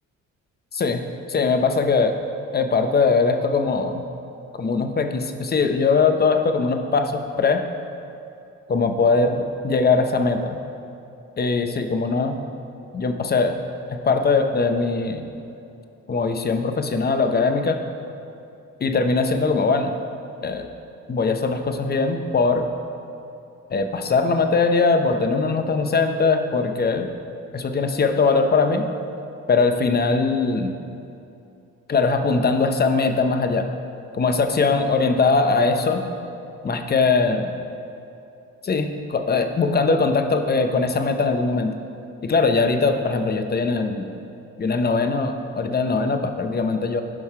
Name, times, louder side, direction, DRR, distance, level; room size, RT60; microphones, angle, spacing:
voice 1, 0.7-1.0 1.3-2.2 2.5-4.0 4.6-7.6 8.7-10.6 11.4-12.4 12.9-13.5 13.9-15.3 16.1-17.8 18.8-20.0 20.4-20.7 21.1-22.7 23.7-27.1 27.5-28.8 29.5-30.8 31.9-33.7 34.1-36.0 36.6-37.5 38.6-41.7 42.2-44.1 44.6-47.0, left 4 dB, 30° left, 6 dB, 0.7 m, -21 dB
11.0 x 5.5 x 4.6 m, 2.7 s
cardioid pair, 90°, 30 cm